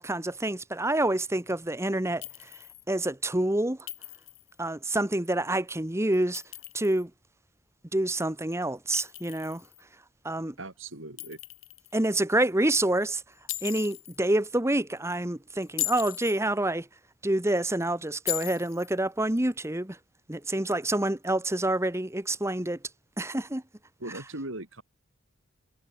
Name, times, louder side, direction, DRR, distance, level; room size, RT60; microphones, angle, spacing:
voice 1, 0.0-3.8 4.6-6.4 6.7-7.1 7.9-9.6 10.2-10.5 11.9-13.2 13.6-16.9 17.2-20.0 20.3-22.8 23.2-23.6, right 1 dB, 15° right, 1.4 m, -27 dB
Chink clink, 2.2-2.8 3.9-4.5 6.1-7.0 8.9-9.8 11.2-11.9 13.5-14.2 15.6-16.4 18.3-18.9, left 15 dB, 80° left, 3.1 m, -37 dB
voice 2, 10.6-11.4 24.0-24.8, right 2 dB, 75° right, 5.6 m, -39 dB
head